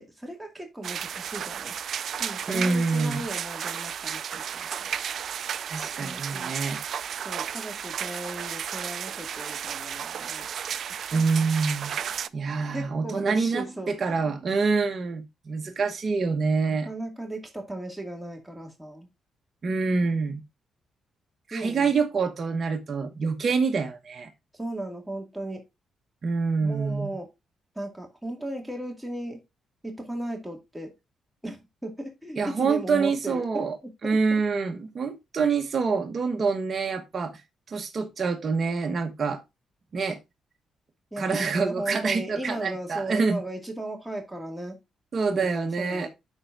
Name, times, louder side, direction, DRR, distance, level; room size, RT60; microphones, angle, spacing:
voice 1, 0.0-1.7 2.2-4.9 6.0-6.5 7.2-10.5 11.0-11.2 12.7-14.2 16.8-19.1 21.5-21.9 24.5-25.7 26.6-27.3 27.8-29.4 29.8-30.9 31.4-33.7 34.0-34.2 41.1-44.8 45.3-46.1, right 1 dB, 5° right, 2.2 m, -36 dB
sound 1, 0.8-12.3, right 8 dB, 65° right, 0.4 m, -33 dB
voice 2, 2.5-3.2 5.7-6.8 11.1-11.9 12.3-16.9 19.6-20.4 21.5-24.3 26.2-27.1 32.4-33.8 34.0-37.4 37.7-39.4 39.9-40.2 41.2-43.4 45.1-46.1, right 4 dB, 45° right, 1.2 m, -26 dB
12.0 x 4.5 x 2.6 m
cardioid pair, 85°, 0 cm